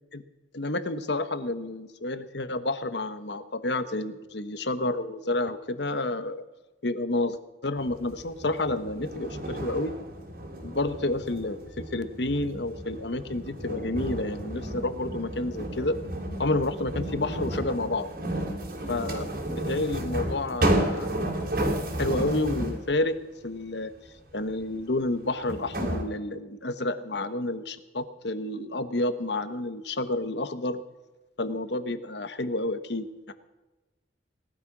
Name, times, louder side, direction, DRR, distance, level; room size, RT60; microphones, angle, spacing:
voice 1, 0.5-6.4 6.8-10.0 10.6-16.0 16.4-18.1 18.9-21.1 22.0-23.2 23.4-23.9 24.3-30.8 31.4-33.3, left 2 dB, 65° left, 11 dB, 1.2 m, -30 dB
sound 1, 7.8-22.9 24.7-24.8 25.5-26.0, right 1 dB, 55° right, 3.3 m, -32 dB
18.5 x 12.5 x 6.1 m, 1.1 s
head